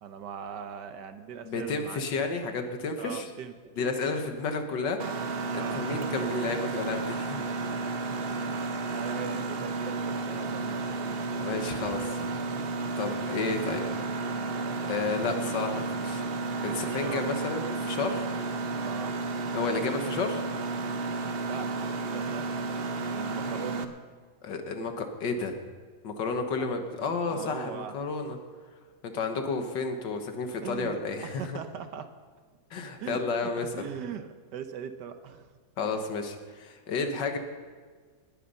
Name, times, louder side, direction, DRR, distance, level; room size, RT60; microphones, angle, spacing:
voice 1, 0.0-2.3 3.0-3.5 5.4-6.6 8.3-8.6 8.9-11.3 12.2-12.5 15.3-15.5 16.5-17.3 18.7-19.2 21.4-21.7 22.1-22.5 23.1-23.8 26.6-26.7 27.3-28.0 30.6-31.0 31.2-32.1 33.0-35.5 35.9-36.1, right 8 dB, 75° right, 9 dB, 1.5 m, -41 dB
voice 2, 1.4-3.3 3.8-5.0 5.5-7.4 11.3-12.2 13.0-13.9 14.9-16.2 16.6-18.2 19.5-20.4 24.4-25.6 26.0-28.4 29.0-31.4 32.7-33.7 35.8-37.4, left 4 dB, 85° left, 5 dB, 2.0 m, -31 dB
Mechanisms, 5.0-23.8, right 3 dB, 50° right, 0.7 m, -32 dB
20.0 x 9.3 x 5.5 m, 1.5 s
omnidirectional pair, 1.9 m